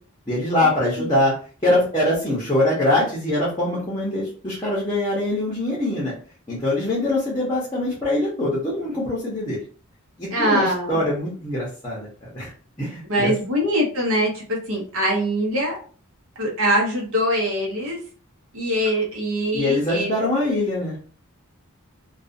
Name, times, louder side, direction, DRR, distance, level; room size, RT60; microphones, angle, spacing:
voice 1, 0.3-1.3 1.6-6.1 6.5-9.6 10.2-12.5 12.8-13.3 19.5-21.1, left 1 dB, 20° left, -7 dB, 0.7 m, -23 dB
voice 2, 10.3-11.1 13.1-15.8 16.4-18.0 18.5-20.1, equal, 65° right, -2 dB, 0.9 m, -23 dB
2.5 x 2.3 x 2.5 m, 0.41 s
head